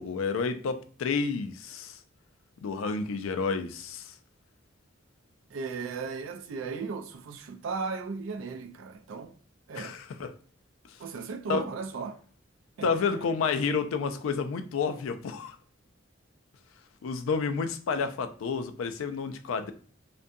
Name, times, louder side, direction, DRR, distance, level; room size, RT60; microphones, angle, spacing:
voice 1, 0.0-2.0 2.6-4.1 9.7-10.3 10.9-11.0 11.5-11.6 12.8-15.6 17.0-19.7, left 5 dB, 85° left, 0.3 m, -30 dB
voice 2, 5.5-9.4 9.7-10.0 11.0-12.2 12.8-13.2, right 4 dB, 70° right, 0.3 m, -36 dB
2.5 x 2.2 x 2.6 m
head